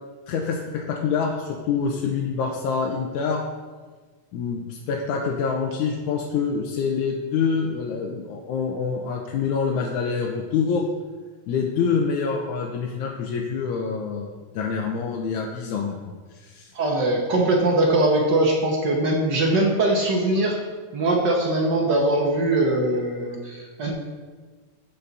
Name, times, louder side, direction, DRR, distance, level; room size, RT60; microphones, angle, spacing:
voice 1, 0.3-3.4 4.3-10.8 11.5-16.0 16.3-16.7, left 5 dB, 85° left, 0 dB, 2.2 m, -26 dB
voice 2, 16.7-20.6 20.9-23.9, right 2 dB, 65° right, 0 dB, 1.0 m, -21 dB
15.5 x 5.6 x 4.0 m, 1.4 s
omnidirectional pair, 3.5 m